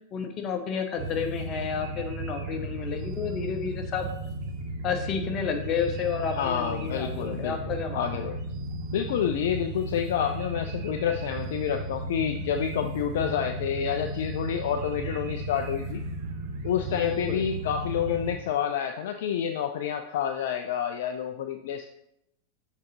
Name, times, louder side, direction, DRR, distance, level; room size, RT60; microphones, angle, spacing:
voice 1, 0.1-4.1 4.8-8.1 16.9-17.4, left 7 dB, 35° left, 5 dB, 0.9 m, -31 dB
sound 1, 1.0-18.4, right 2 dB, 45° right, 0.8 m, -35 dB
voice 2, 6.3-8.4 8.9-16.0 16.6-21.9, left 9 dB, 55° left, 6 dB, 0.4 m, -29 dB
6.4 x 3.9 x 4.2 m, 0.79 s
figure-of-eight pair, 90°, 0 cm